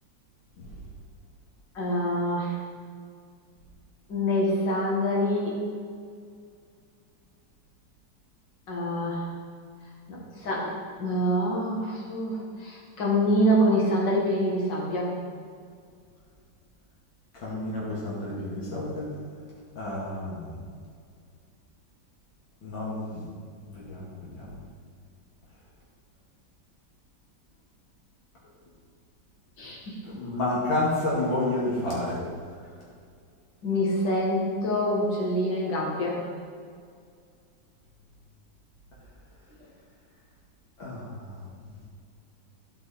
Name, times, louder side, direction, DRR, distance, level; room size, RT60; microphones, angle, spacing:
voice 1, 1.7-2.6 4.1-5.6 8.7-9.3 10.1-15.1 29.6-30.0 33.6-36.2, equal, 70° left, -4 dB, 2.6 m, -26 dB
voice 2, 17.3-19.1 19.8-20.6 22.6-23.2 23.7-24.6 30.1-32.2 40.8-41.4, left 2 dB, 90° left, -7 dB, 2.9 m, -30 dB
12.5 x 5.5 x 4.3 m, 2.2 s
omnidirectional pair, 2.1 m